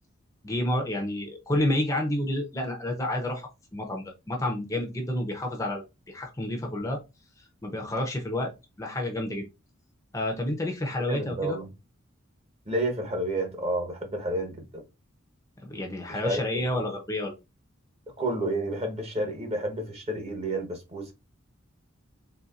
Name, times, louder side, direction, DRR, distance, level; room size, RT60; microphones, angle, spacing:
voice 1, 0.4-7.0 7.4-8.5 8.8-9.4 10.1-11.6 15.7-17.3, left 1 dB, 15° left, 0.6 m, -30 dB
voice 2, 11.1-11.7 12.7-14.8 16.2-16.8 18.2-21.1, right 1 dB, 30° right, 1.0 m, -30 dB
4.1 x 3.5 x 2.4 m
head